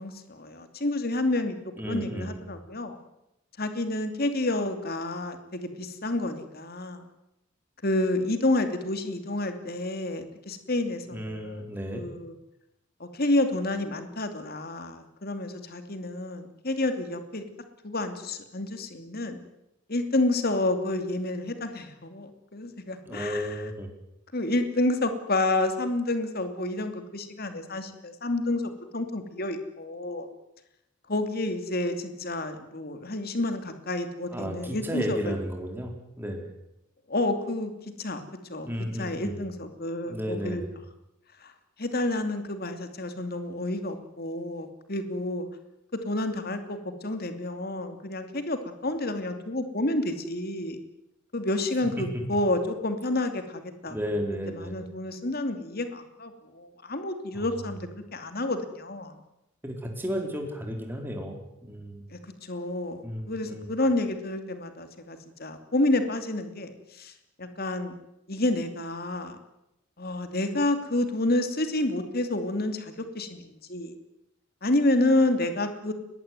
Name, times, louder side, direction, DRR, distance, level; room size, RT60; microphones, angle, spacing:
voice 1, 0.0-1.6 1.9-3.0 3.6-7.0 7.8-11.6 11.9-12.3 13.0-17.4 17.8-19.4 19.9-23.6 24.3-30.3 31.1-35.4 37.1-37.7 38.0-38.2 38.5-38.7 39.0-40.6 41.4-41.5 41.8-45.5 46.0-50.8 51.3-54.0 54.5-59.2 62.1-67.1 67.4-67.9 68.3-69.4 70.0-73.4 73.7-73.9 74.6-75.9, left 2 dB, 45° left, 8 dB, 2.8 m, -29 dB
voice 2, 1.8-2.4 11.1-12.0 23.0-23.9 34.3-35.9 36.2-36.4 38.6-39.4 40.1-40.8 52.0-52.2 53.9-54.8 57.3-57.5 59.6-62.0 63.0-63.7, equal, 10° right, 2 dB, 4.5 m, -33 dB
22.5 x 20.0 x 9.4 m, 0.86 s
head